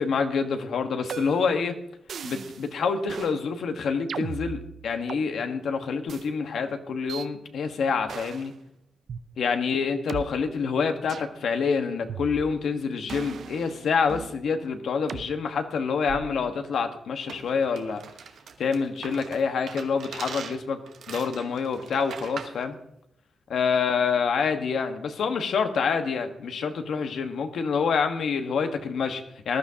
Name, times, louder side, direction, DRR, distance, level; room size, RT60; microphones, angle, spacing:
voice 1, 0.0-1.7 2.2-8.5 9.4-18.0 18.6-20.8 21.1-22.8 23.5-29.6, left 5 dB, 80° left, 6 dB, 1.3 m, -27 dB
sound 1, 1.1-1.6 2.1-2.7 3.1-3.4 4.1-5.3 6.1-6.3 7.1-7.3 8.1-8.5 9.1-9.2 10.1-10.2 11.1-11.4 12.1-12.7 13.1-14.4 15.1-15.3 16.1-16.5, right 7 dB, 65° right, 0.5 m, -37 dB
sound 2, 17.3-22.6, right 6 dB, 90° right, 1.2 m, -41 dB
19.5 x 12.5 x 2.8 m, 0.77 s
wide cardioid pair, 135°, 0 cm